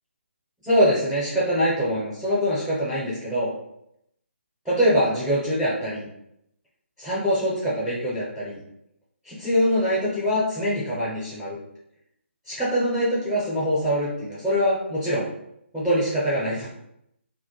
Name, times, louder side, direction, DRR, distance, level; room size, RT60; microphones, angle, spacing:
voice 1, 0.6-3.5 4.6-6.1 7.0-8.6 9.2-11.6 12.5-15.3 15.7-16.7, equal, 5° right, -9 dB, 0.5 m, -23 dB
2.2 x 2.1 x 2.9 m, 0.77 s
figure-of-eight pair, 150°, 7 cm